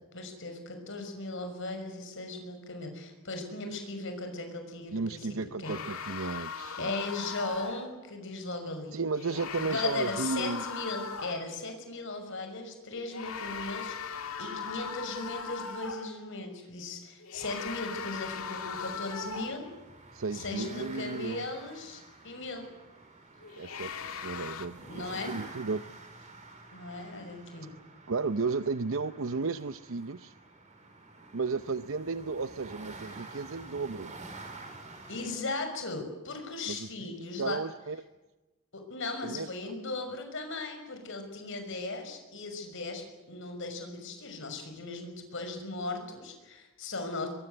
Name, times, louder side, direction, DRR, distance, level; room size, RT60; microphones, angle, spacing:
voice 1, 0.0-5.8 6.8-9.0 9.6-19.7 20.3-22.7 24.8-25.4 26.7-27.7 35.1-37.6 38.7-47.3, left 3 dB, 60° left, 6 dB, 6.0 m, -37 dB
voice 2, 4.9-6.9 8.9-10.6 20.1-21.4 23.6-25.9 26.2-26.3 28.1-30.3 31.3-34.1 36.7-36.9 37.4-38.0 39.2-39.5, right 4 dB, 65° right, 12 dB, 0.7 m, -34 dB
sound 1, 5.6-8.0 9.1-11.6 12.9-16.2 17.2-19.8 23.4-24.7, left 5 dB, 80° left, 2.0 m, -39 dB
sound 2, 18.0-35.4, right 3 dB, 35° right, 5.1 m, -49 dB
23.0 x 23.0 x 7.9 m, 1.1 s
head